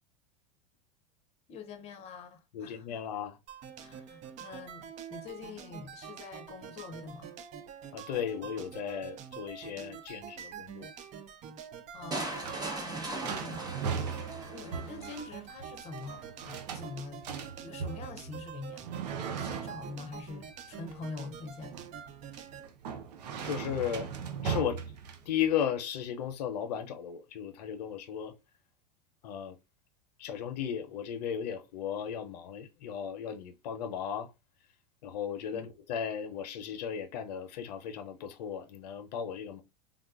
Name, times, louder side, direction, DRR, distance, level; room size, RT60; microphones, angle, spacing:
voice 1, 1.5-3.1 3.8-7.4 11.9-14.0 14.5-17.3 17.6-18.9 19.2-21.8 35.5-35.7, left 4 dB, 30° left, 0.7 m, -45 dB
voice 2, 2.5-3.4 7.9-10.9 23.4-24.1 24.4-24.8 25.3-28.3 29.2-29.6 30.2-34.3 35.0-39.6, left 8 dB, 80° left, 0.6 m, -35 dB
sound 1, 3.5-22.7, right 8 dB, 35° right, 0.4 m, -46 dB
sound 2, 12.0-25.6, right 6 dB, 85° right, 0.6 m, -39 dB
sound 3, 12.1-15.1, right 2 dB, 20° right, 0.9 m, -38 dB
3.5 x 2.3 x 2.3 m
supercardioid pair, 120°, 20 cm